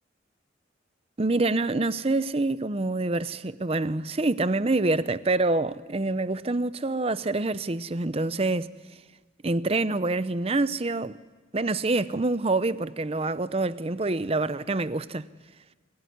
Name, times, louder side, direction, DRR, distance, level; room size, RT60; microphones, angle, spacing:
voice 1, 1.2-8.7 9.4-11.2 11.5-15.2, right 2 dB, 30° right, 0.6 m, -26 dB
26.0 x 15.5 x 9.4 m
head